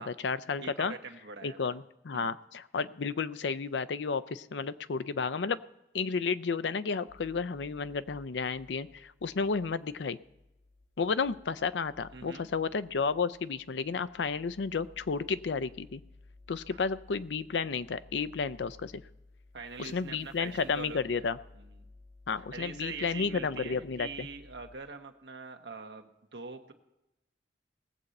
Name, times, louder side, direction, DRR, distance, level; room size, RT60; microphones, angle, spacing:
voice 1, 0.0-0.9 1.4-5.6 5.9-10.2 11.0-16.0 16.5-19.0 19.8-21.4 22.3-24.3, left 5 dB, 90° left, 14 dB, 0.5 m, -32 dB
voice 2, 0.6-1.8 2.1-2.3 12.1-12.5 16.7-16.8 19.5-21.7 22.5-26.7, right 4 dB, 75° right, 5 dB, 1.2 m, -44 dB
sound 1, 7.1-24.8, left 2 dB, 60° left, 2.8 m, -57 dB
19.0 x 7.9 x 4.2 m, 0.92 s
head